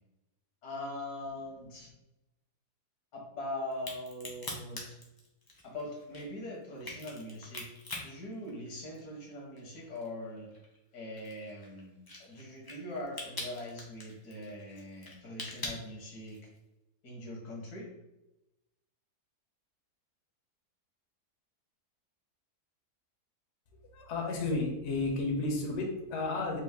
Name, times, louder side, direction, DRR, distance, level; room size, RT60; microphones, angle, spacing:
voice 1, 0.6-1.9 3.1-5.0 5.6-7.7 8.0-10.5 10.9-16.4 17.0-17.9, left 1 dB, 75° left, -2 dB, 1.6 m, -42 dB
Crack, 3.7-9.2 9.6-16.6, left 2 dB, 35° left, 0.3 m, -44 dB
voice 2, 23.9-26.6, left 3 dB, 55° left, 0 dB, 1.0 m, -32 dB
4.6 x 2.4 x 3.6 m, 0.94 s
omnidirectional pair, 1.7 m